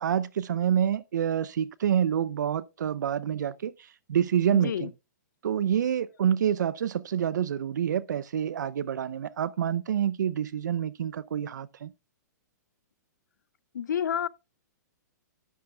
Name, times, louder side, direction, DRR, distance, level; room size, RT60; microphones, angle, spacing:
voice 1, 0.0-3.7 4.1-4.9 5.4-11.9, right 9 dB, 75° right, 0.6 m, -27 dB
voice 2, 4.5-4.9 13.7-14.3, left 9 dB, 75° left, 0.5 m, -29 dB
12.0 x 9.5 x 2.3 m
hypercardioid pair, 125°, 10 cm